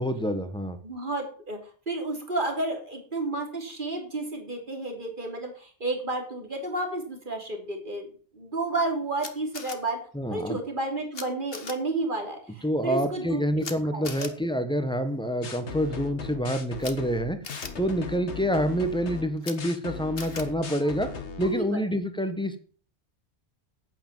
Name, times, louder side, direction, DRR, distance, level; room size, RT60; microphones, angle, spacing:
voice 1, 0.0-0.8 10.1-10.6 12.6-17.4 17.8-21.1 21.4-22.6, equal, 5° left, 9 dB, 1.4 m, -27 dB
voice 2, 0.8-1.6 1.9-8.1 8.3-10.0 10.3-13.6 13.9-14.3 21.4-21.8, right 2 dB, 50° right, 3 dB, 3.2 m, -31 dB
Camera, 9.2-9.8 11.1-11.2 11.5-11.7 13.6-13.7 14.0-14.3 16.8-16.9 17.4-17.7 19.4-19.5 20.2-20.4, left 5 dB, 60° left, 1.6 m, -38 dB
sound 1, 15.4-21.5, left 5 dB, 85° left, 1.7 m, -38 dB
9.3 x 9.0 x 7.4 m, 0.43 s
omnidirectional pair, 1.1 m